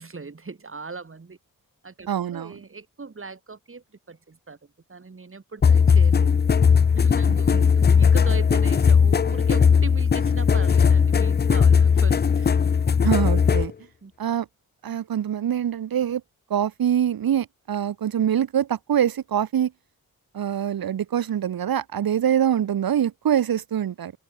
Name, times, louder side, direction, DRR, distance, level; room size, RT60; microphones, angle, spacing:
voice 1, 0.0-1.4 1.8-6.5 6.9-12.5 14.0-14.1, right 4 dB, 35° right, 2.9 m, -39 dB
voice 2, 2.1-2.5 7.3-7.7 13.0-13.7 14.2-14.5 14.8-16.2 16.5-19.7 20.3-24.1, right 9 dB, 85° right, 1.0 m, -24 dB
sound 1, 5.6-13.7, left 6 dB, 30° left, 0.4 m, -18 dB
open air
wide cardioid pair, 90°, 35 cm